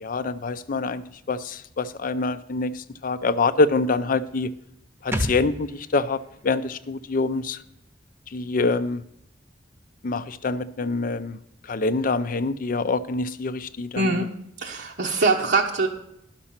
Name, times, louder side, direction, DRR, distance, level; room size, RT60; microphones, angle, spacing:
voice 1, 0.0-4.5 5.0-6.2 6.4-7.6 8.3-9.0 10.0-11.4 11.7-14.1, left 3 dB, 50° left, 14 dB, 0.5 m, -25 dB
sound 1, 5.1-8.6 8.9-9.0, equal, 10° right, 0.8 m, -35 dB
voice 2, 13.9-14.3 14.6-15.9, right 3 dB, 65° right, 0 dB, 0.9 m, -22 dB
11.0 x 6.1 x 5.7 m, 0.77 s
head